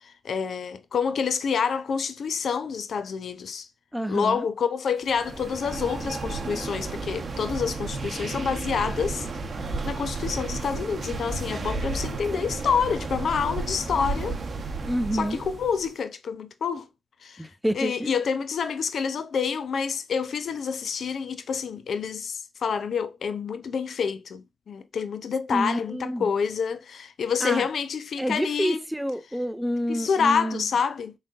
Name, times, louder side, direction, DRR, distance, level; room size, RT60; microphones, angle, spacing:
voice 1, 0.0-3.7 4.1-9.3 9.8-14.4 15.1-16.9 17.2-17.5 17.7-28.8 29.9-31.1, left 6 dB, 70° left, 0.4 m, -28 dB
voice 2, 3.9-4.5 14.8-15.4 17.4-18.1 25.5-26.3 27.4-27.7 28.2-30.7, equal, 5° right, 0.6 m, -28 dB
sound 1, 5.1-15.9, right 3 dB, 55° right, 0.7 m, -33 dB
3.9 x 3.5 x 2.4 m
supercardioid pair, 40°, 0 cm